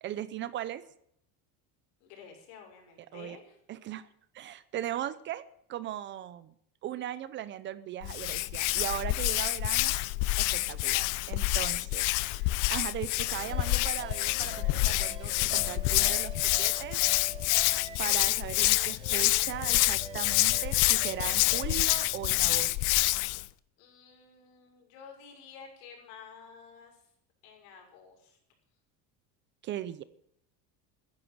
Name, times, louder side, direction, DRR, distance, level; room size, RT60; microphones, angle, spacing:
voice 1, 0.0-0.8 3.1-3.4 3.7-4.1 4.3-5.4 5.7-6.5 6.8-10.0 10.4-17.1 18.0-22.8 29.6-30.0, right 12 dB, 30° right, 16 dB, 0.6 m, -38 dB
voice 2, 2.0-3.6 23.8-27.0 27.4-28.4, left 6 dB, 75° left, 1 dB, 6.5 m, -51 dB
Hands, 8.0-23.5, left 21 dB, 55° left, 0.6 m, -27 dB
sound 1, 13.3-21.9, right 6 dB, 15° right, 0.9 m, -47 dB
15.0 x 10.5 x 7.8 m, 0.72 s
cardioid pair, 180°, 37 cm